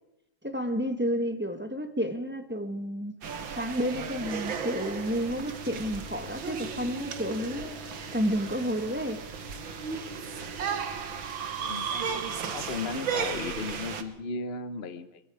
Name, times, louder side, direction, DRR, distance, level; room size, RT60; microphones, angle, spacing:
voice 1, 0.4-3.1 3.5-7.8 8.1-9.2, equal, 5° right, 1.2 m, -30 dB
sound 1, 3.2-14.0, right 6 dB, 80° right, 2.3 m, -35 dB
voice 2, 11.6-11.9 12.5-15.2, left 4 dB, 35° left, 1.3 m, -35 dB
23.0 x 23.0 x 5.0 m
omnidirectional pair, 2.1 m